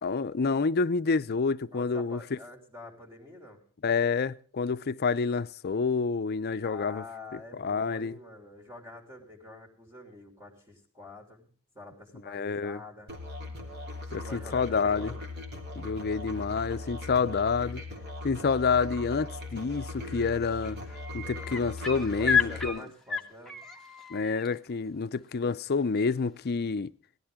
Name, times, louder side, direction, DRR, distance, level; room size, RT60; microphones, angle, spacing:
voice 1, 0.0-2.4 3.8-7.0 7.3-8.1 12.3-12.8 14.1-15.1 15.7-17.8 18.2-20.8 21.1-22.8 24.1-26.9, left 5 dB, 50° left, 0.5 m, -28 dB
voice 2, 1.7-3.6 6.6-13.1 14.1-15.2 21.3-23.6, left 2 dB, 20° right, 3.2 m, -47 dB
Musical instrument, 13.1-22.7, left 2 dB, 50° right, 3.3 m, -39 dB
sound 1, 19.8-20.1 20.4-24.5 26.1-26.2, left 6 dB, ahead, 1.4 m, -31 dB
18.0 x 13.0 x 3.6 m
head